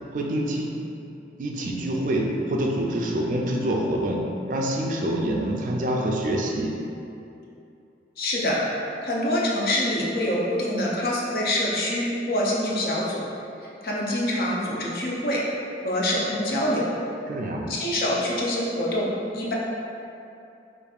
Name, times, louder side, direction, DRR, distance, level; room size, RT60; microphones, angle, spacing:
voice 1, 0.1-0.8 1.4-6.9 17.3-17.7, right 1 dB, 45° right, 0 dB, 0.3 m, -26 dB
voice 2, 8.2-8.6 9.0-13.3 13.6-15.4 15.8-16.9 17.7-19.5, left 1 dB, 55° left, -4 dB, 0.6 m, -25 dB
5.0 x 2.5 x 2.4 m, 2.7 s
head